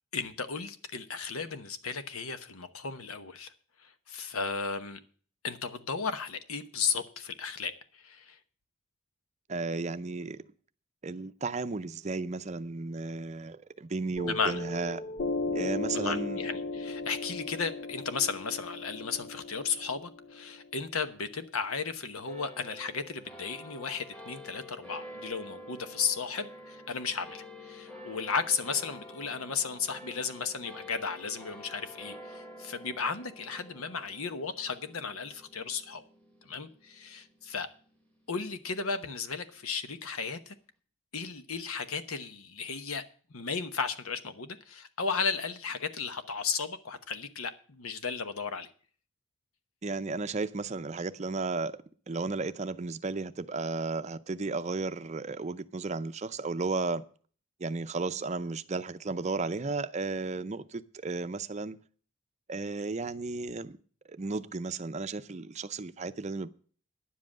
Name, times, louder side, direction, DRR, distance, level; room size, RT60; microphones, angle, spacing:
voice 1, 0.1-3.5 3.8-5.0 5.4-8.4 14.3-14.6 15.9-36.0 36.4-37.7 38.3-40.5 41.1-43.0 43.3-48.7, left 5 dB, 90° left, 1.1 m, -34 dB
voice 2, 9.5-10.5 11.0-15.0 15.5-16.4 49.8-57.0 57.6-61.8 62.5-63.8 64.1-66.5, right 3 dB, 35° right, 0.5 m, -34 dB
Piano, 14.2-21.2, left 3 dB, 45° left, 0.7 m, -36 dB
sound 1, 22.2-39.0, left 1 dB, 5° left, 1.5 m, -49 dB
10.0 x 7.6 x 7.4 m
head